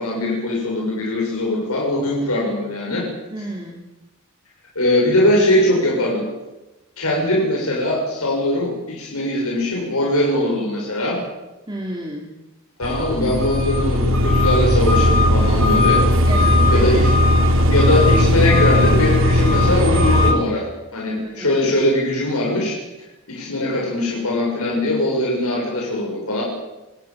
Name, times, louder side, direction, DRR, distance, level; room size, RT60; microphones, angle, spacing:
voice 1, 0.0-3.1 4.8-6.3 7.0-11.2 12.8-16.3 16.7-17.1 17.7-22.8 23.3-26.4, left 1 dB, 85° left, -3 dB, 7.5 m, -21 dB
voice 2, 3.3-3.8 11.7-12.3 16.2-17.1 21.2-21.7, right 1 dB, 20° right, 0 dB, 3.2 m, -31 dB
sound 1, 12.8-20.3, left 1 dB, 65° right, 3.5 m, -16 dB
27.0 x 18.5 x 7.5 m, 1.0 s
head